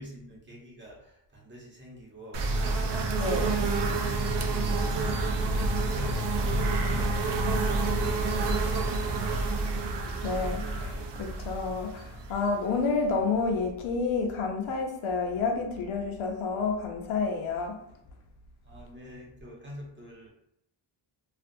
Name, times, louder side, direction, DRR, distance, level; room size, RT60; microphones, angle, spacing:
voice 1, 0.0-5.3 5.7-8.4 8.7-10.2 18.6-20.3, equal, 25° right, -3 dB, 0.8 m, -46 dB
sound 1, 2.3-13.0, right 2 dB, 60° right, 0.5 m, -28 dB
voice 2, 3.2-3.5 10.2-17.8, left 4 dB, 80° left, 2 dB, 0.7 m, -29 dB
2.5 x 2.5 x 2.6 m, 0.75 s
wide cardioid pair, 125°, 48 cm